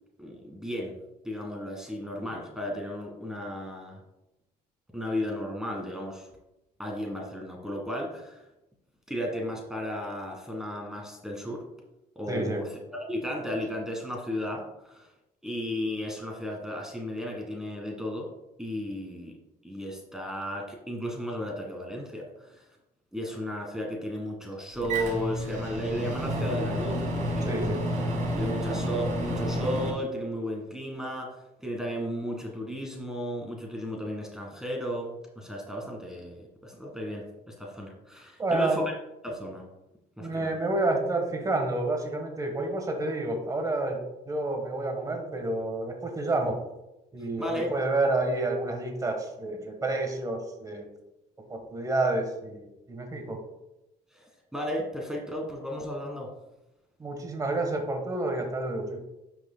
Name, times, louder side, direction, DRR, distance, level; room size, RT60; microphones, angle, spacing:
voice 1, 0.2-1.0 1.2-4.0 4.9-6.3 6.8-8.4 9.1-11.7 12.1-15.1 15.4-18.3 18.6-19.3 19.6-22.7 23.1-27.6 28.4-38.9 39.2-39.6 40.2-40.6 47.4-47.7 54.1-56.3, equal, 5° right, 0 dB, 1.6 m, -34 dB
voice 2, 12.3-12.6 27.5-27.8 38.4-38.8 40.2-46.6 47.1-50.9 51.5-53.4 57.0-59.0, right 2 dB, 20° right, 3 dB, 1.3 m, -29 dB
Microwave oven, 24.8-29.9, equal, 50° right, 2.3 m, -30 dB
10.5 x 6.1 x 2.2 m, 0.93 s
cardioid pair, 110°, 17 cm